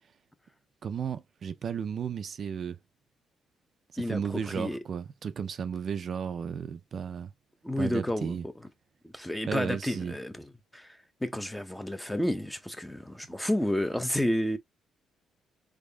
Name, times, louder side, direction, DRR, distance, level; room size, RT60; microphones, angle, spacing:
voice 1, 0.8-2.8 3.9-7.3 7.8-8.4 9.5-10.1, right 7 dB, 55° right, 0.4 m, -34 dB
voice 2, 4.0-4.8 7.6-8.5 9.0-14.6, left 1 dB, 5° left, 0.6 m, -31 dB
3.5 x 3.5 x 2.2 m
cardioid pair, 90°, 0 cm